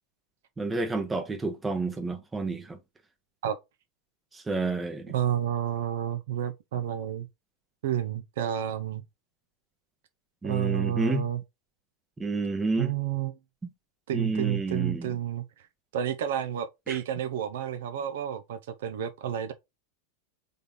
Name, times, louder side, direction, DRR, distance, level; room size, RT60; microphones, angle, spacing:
voice 1, 0.6-2.8 4.3-5.1 10.4-11.3 12.2-12.9 14.1-15.2 16.9-17.0, right 3 dB, 10° right, 0.9 m, -30 dB
voice 2, 5.1-7.3 7.8-9.0 10.4-11.4 12.8-13.3 14.1-15.4 15.9-19.5, right 10 dB, 55° right, 0.6 m, -30 dB
3.9 x 3.5 x 3.7 m
figure-of-eight pair, 90°, 0 cm